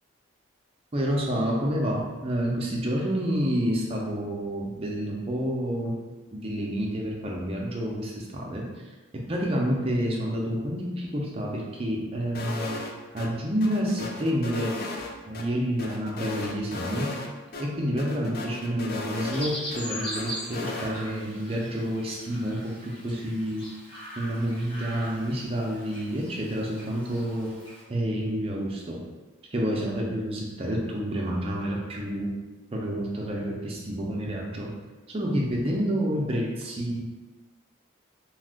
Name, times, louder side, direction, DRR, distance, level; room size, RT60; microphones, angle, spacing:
voice 1, 0.9-5.9 6.3-8.7 9.1-12.8 13.1-14.7 15.3-17.2 17.6-23.7 24.2-27.5 27.9-29.0 29.5-32.4 32.7-34.7 35.1-37.0, equal, 30° right, -2 dB, 0.5 m, -29 dB
sound 1, 12.3-12.9 13.2-13.3 13.6-15.4 15.8-17.3 17.5-17.6 18.0-19.8 20.1-20.9, left 3 dB, 50° left, 0.3 m, -35 dB
Chirp tweet, 19.3-27.8, equal, 25° left, 0.7 m, -40 dB
2.4 x 2.3 x 3.5 m, 1.2 s
head